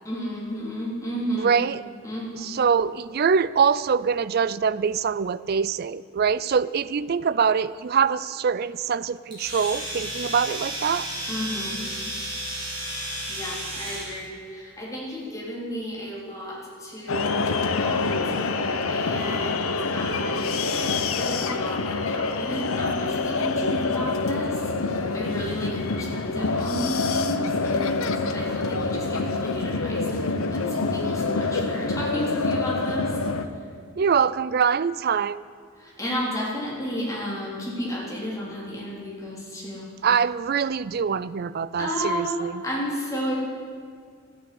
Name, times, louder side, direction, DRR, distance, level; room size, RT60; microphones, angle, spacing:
voice 1, 0.1-1.5 2.0-2.5 11.3-11.8 13.3-33.2 33.5-33.7 35.8-39.9 41.8-43.3, equal, 15° left, -5 dB, 3.4 m, -33 dB
voice 2, 1.4-1.8 2.4-11.1 34.0-35.4 40.0-42.5, right 6 dB, 45° right, 17 dB, 0.4 m, -24 dB
Domestic sounds home sounds, 9.3-14.1, right 1 dB, 20° right, 4.3 m, -32 dB
sound 1, 17.1-33.5, left 3 dB, 75° left, 0.9 m, -26 dB
14.0 x 9.3 x 8.5 m, 2.1 s
head